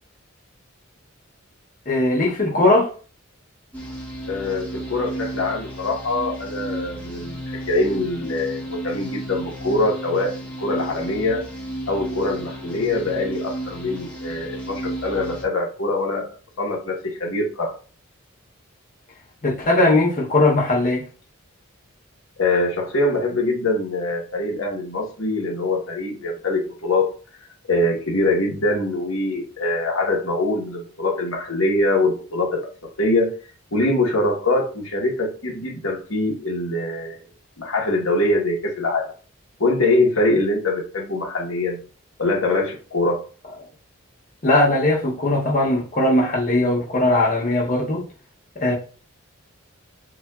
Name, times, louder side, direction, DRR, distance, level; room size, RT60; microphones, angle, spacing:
voice 1, 1.9-2.9 19.4-21.0 44.4-48.0 48.6-48.7, left 2 dB, 40° left, 0.8 m, -19 dB
sound 1, 3.7-15.4, right 1 dB, 5° left, 0.9 m, -33 dB
voice 2, 4.3-11.4 11.9-16.3 16.6-17.7 22.4-27.1 27.7-32.6 33.0-33.3 33.7-37.2 37.6-39.1 39.6-41.8 42.2-43.2, left 2 dB, 75° left, 1.2 m, -23 dB
7.1 x 2.5 x 2.3 m
head